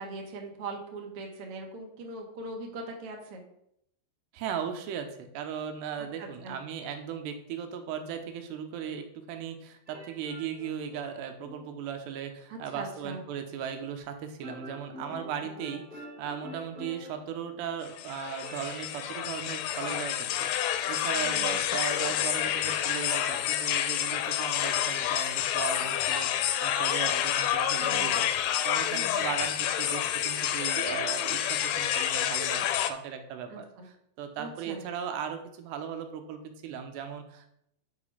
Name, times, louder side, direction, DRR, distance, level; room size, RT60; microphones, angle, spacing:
voice 1, 0.0-3.4 6.0-6.5 12.5-13.2 19.4-19.5 21.2-21.6 27.8-28.2 28.9-29.2 33.5-33.8 34.4-34.8, right 2 dB, 60° right, 1 dB, 1.5 m, -41 dB
voice 2, 4.3-37.5, right 8 dB, 80° right, 6 dB, 2.9 m, -37 dB
sound 1, 9.9-11.7 14.4-17.7 18.4-19.2, left 1 dB, 15° right, 2.3 m, -46 dB
sound 2, 17.9-32.9, left 11 dB, 80° left, 2.6 m, -29 dB
9.2 x 5.0 x 5.5 m, 0.76 s
omnidirectional pair, 4.9 m